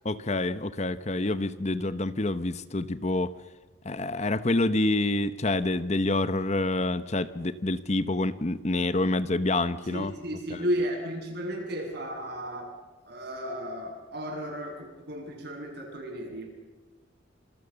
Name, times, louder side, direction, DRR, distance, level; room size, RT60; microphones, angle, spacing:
voice 1, 0.0-3.3 3.8-10.1 10.5-10.6, left 2 dB, 35° left, 13 dB, 0.8 m, -27 dB
voice 2, 9.9-12.7 13.0-16.5, equal, 50° right, 1 dB, 7.7 m, -34 dB
27.5 x 27.0 x 6.8 m, 1.3 s
head